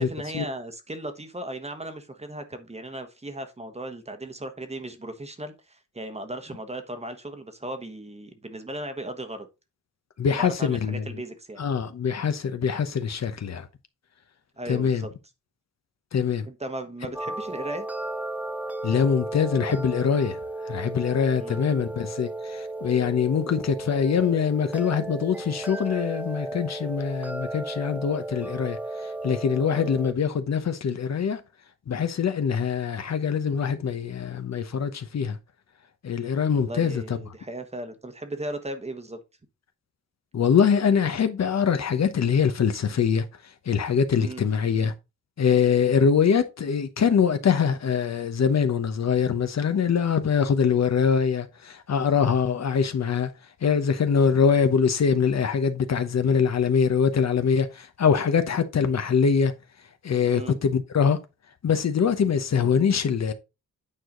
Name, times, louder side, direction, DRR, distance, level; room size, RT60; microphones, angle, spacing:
voice 1, 0.0-9.5 10.4-11.6 14.6-15.1 16.5-17.9 21.3-21.6 29.7-29.9 36.5-39.2 44.1-44.4 60.3-60.6, right 1 dB, 20° right, 1.2 m, -36 dB
voice 2, 10.2-11.2 11.6-13.7 14.7-15.0 16.1-16.5 18.8-20.4 20.6-28.8 29.2-31.4 31.9-35.4 36.0-37.2 40.3-43.3 43.7-44.9 45.4-53.3 53.6-59.5 60.0-61.2 61.6-63.3, left 6 dB, 55° left, 1.0 m, -23 dB
sound 1, 17.1-30.1, right 2 dB, 5° right, 0.5 m, -34 dB
8.9 x 4.9 x 3.8 m
wide cardioid pair, 135°, 31 cm